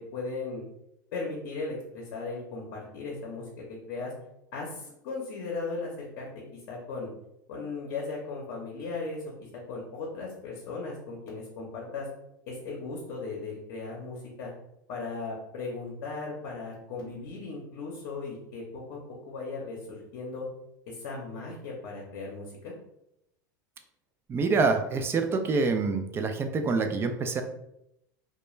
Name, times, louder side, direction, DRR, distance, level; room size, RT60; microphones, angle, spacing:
voice 1, 0.1-0.6 1.1-4.1 4.5-7.1 7.5-9.2 9.7-12.1 12.5-14.5 14.9-19.0 19.3-20.4 20.9-22.7, left 3 dB, 65° left, -2 dB, 0.7 m, -37 dB
voice 2, 24.3-27.4, right 4 dB, 20° right, 6 dB, 0.3 m, -26 dB
2.2 x 2.1 x 3.0 m, 0.81 s
supercardioid pair, 110°, 11 cm